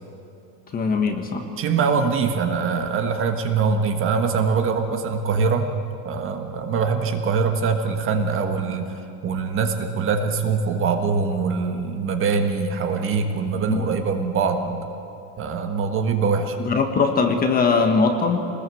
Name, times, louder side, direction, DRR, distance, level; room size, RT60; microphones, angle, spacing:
voice 1, 0.7-1.4 13.7-13.9 16.6-18.5, left 4 dB, 20° left, 5 dB, 1.4 m, -21 dB
voice 2, 1.6-5.7 6.0-8.8 9.2-14.8 15.4-16.6, right 5 dB, 30° right, 5 dB, 1.5 m, -23 dB
24.5 x 20.5 x 7.9 m, 2.8 s
cardioid pair, 170°, 40 cm